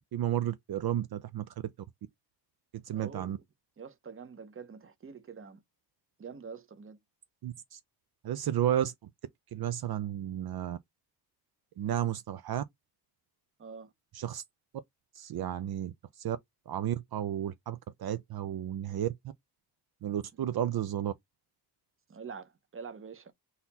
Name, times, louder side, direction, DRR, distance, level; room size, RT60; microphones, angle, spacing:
voice 1, 0.1-1.5 2.7-3.4 7.4-7.8 8.2-8.9 9.5-10.8 11.8-12.6 14.1-14.4 15.2-16.4 16.7-19.1 20.0-21.1, right 11 dB, 65° right, 0.5 m, -32 dB
voice 2, 2.9-3.4 3.8-5.6 6.2-7.0 13.6-13.9 22.1-23.3, right 6 dB, 35° right, 0.7 m, -45 dB
4.0 x 2.8 x 4.0 m
wide cardioid pair, 150°, 40 cm